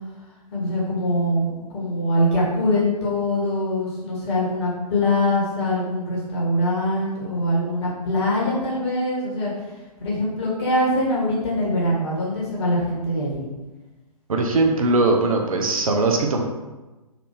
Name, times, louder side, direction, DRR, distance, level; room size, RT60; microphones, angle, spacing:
voice 1, 0.5-9.5 10.0-13.4, left 1 dB, 45° left, -4 dB, 1.4 m, -23 dB
voice 2, 14.3-16.4, right 2 dB, 60° right, 2 dB, 0.6 m, -20 dB
4.1 x 2.6 x 3.4 m, 1.1 s
figure-of-eight pair, 125°, 20 cm